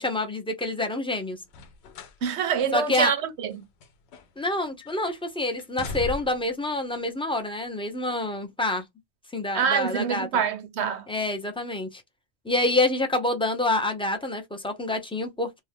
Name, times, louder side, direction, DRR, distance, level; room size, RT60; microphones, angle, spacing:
voice 1, 0.0-1.4 2.7-3.1 4.4-8.8 9.3-10.3 11.1-12.0 12.4-15.6, left 2 dB, 10° left, 0.3 m, -27 dB
open heavy door step out close door muffled dog bark, 1.5-2.2 2.6-2.8 3.5-4.5 4.8-5.2 5.6-6.5 7.4-7.5, left 3 dB, 80° left, 0.9 m, -38 dB
voice 2, 2.2-3.7 9.5-11.1, right 7 dB, 80° right, 0.9 m, -26 dB
2.7 x 2.2 x 3.3 m
omnidirectional pair, 1.1 m